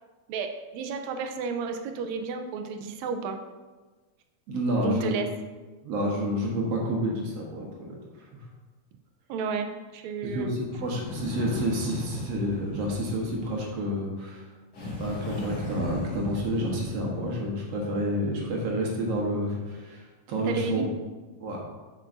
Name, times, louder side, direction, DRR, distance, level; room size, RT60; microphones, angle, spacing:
voice 1, 0.3-3.4 4.8-5.3 9.3-10.6 20.4-20.9, right 5 dB, 80° right, 6 dB, 1.8 m, -32 dB
voice 2, 4.5-5.2 5.8-8.0 10.2-14.4 15.0-20.8 21.4-21.7, equal, 65° right, -2 dB, 2.1 m, -29 dB
sound 1, 10.7-13.8 14.7-17.4, left 1 dB, 60° left, 2.8 m, -37 dB
8.9 x 6.3 x 2.6 m, 1.3 s
omnidirectional pair, 3.3 m